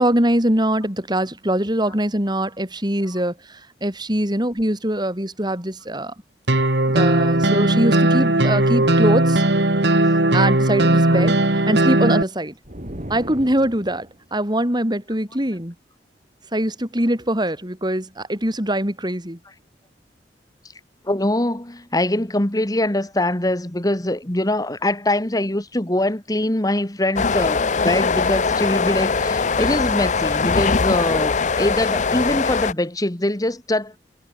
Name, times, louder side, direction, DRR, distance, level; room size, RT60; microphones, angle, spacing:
voice 1, 0.0-6.1 6.9-9.4 10.3-11.4 11.7-12.5 13.1-15.7 16.5-19.4, right 1 dB, 25° right, 5.7 m, -22 dB
sound 1, 6.5-12.2, right 1 dB, 75° right, 2.8 m, -17 dB
sound 2, 12.6-14.2, equal, 45° right, 5.9 m, -36 dB
voice 2, 21.0-33.9, left 1 dB, 20° left, 1.7 m, -23 dB
sound 3, 27.2-32.7, left 4 dB, 45° left, 0.7 m, -21 dB
head